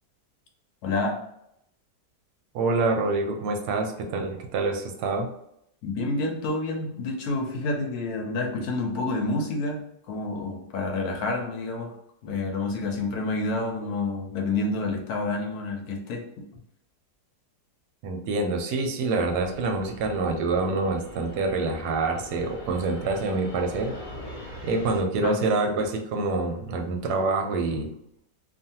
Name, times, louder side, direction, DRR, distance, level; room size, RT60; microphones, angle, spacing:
voice 1, 0.8-1.2 5.8-11.9 12.2-16.2 25.2-25.4, left 2 dB, 65° left, 2 dB, 1.0 m, -28 dB
voice 2, 2.5-5.3 18.0-24.0 24.6-27.9, right 3 dB, 75° right, 4 dB, 1.0 m, -26 dB
Fixed-wing aircraft airplane, 19.2-25.0, left 1 dB, 45° left, 0.6 m, -42 dB
2.7 x 2.4 x 2.7 m, 0.75 s
omnidirectional pair, 1.9 m